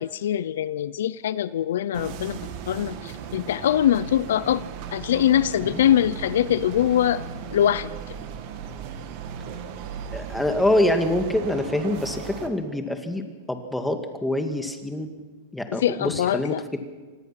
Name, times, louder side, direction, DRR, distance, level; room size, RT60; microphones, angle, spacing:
voice 1, 0.0-2.4 2.7-4.6 4.9-7.2 7.5-7.9 15.8-16.6, left 11 dB, 80° left, 17 dB, 0.6 m, -23 dB
sound 1, 1.9-12.5, right 7 dB, 55° right, 2.6 m, -36 dB
voice 2, 10.1-15.1 15.5-16.8, left 1 dB, 5° left, 5 dB, 2.1 m, -25 dB
25.5 x 19.0 x 6.0 m, 1.4 s
supercardioid pair, 135°, 0 cm